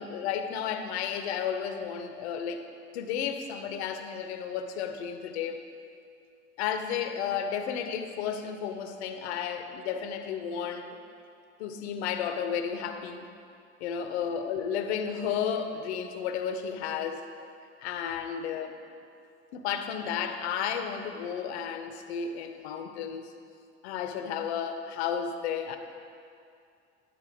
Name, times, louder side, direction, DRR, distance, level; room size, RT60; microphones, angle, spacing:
voice 1, 0.0-2.6 2.9-5.6 6.6-10.9 11.6-13.3 13.8-17.2 17.8-18.8 19.5-23.3 23.8-25.8, left 7 dB, 75° left, 7 dB, 0.7 m, -32 dB
10.0 x 4.3 x 5.0 m, 2.4 s
hypercardioid pair, 65°, 34 cm